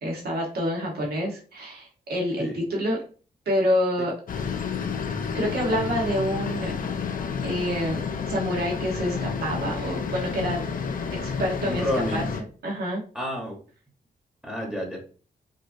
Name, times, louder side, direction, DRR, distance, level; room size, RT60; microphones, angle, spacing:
voice 1, 0.0-3.0 3.4-4.1 5.3-6.7 7.4-8.0 8.3-10.6 11.2-11.9 12.1-12.2 12.6-13.0, equal, 75° right, -2 dB, 1.3 m, -27 dB
sound 1, 4.3-12.4, left 6 dB, 60° left, 0.6 m, -30 dB
voice 2, 11.6-12.3 13.1-13.6 14.4-15.0, equal, 5° right, -2 dB, 1.1 m, -29 dB
5.0 x 2.7 x 2.7 m, 0.39 s
wide cardioid pair, 110°, 17 cm